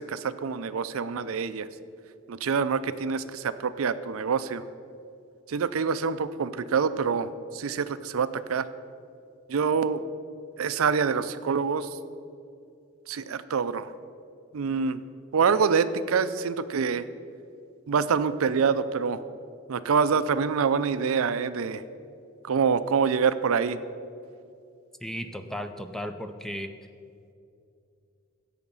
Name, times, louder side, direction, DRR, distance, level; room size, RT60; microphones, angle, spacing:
voice 1, 0.0-1.7 2.3-4.6 5.5-8.7 9.5-10.0 10.6-12.0 13.1-13.9 14.5-15.0 15.3-17.1 17.9-19.2 19.7-21.8 22.4-23.8, right 6 dB, 80° right, 13 dB, 0.5 m, -26 dB
voice 2, 25.0-26.7, equal, ahead, 8 dB, 0.4 m, -35 dB
15.5 x 5.8 x 5.4 m, 2.5 s
head